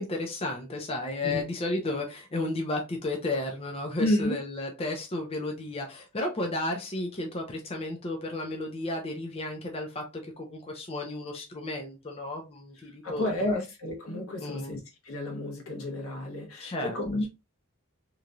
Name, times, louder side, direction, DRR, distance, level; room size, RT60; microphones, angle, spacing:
voice 1, 0.0-13.6 14.4-14.7 16.6-16.9, left 2 dB, 30° left, 0.5 m, -33 dB
voice 2, 4.0-4.4 12.7-17.3, left 1 dB, 85° left, 1.2 m, -31 dB
3.0 x 2.6 x 2.3 m
head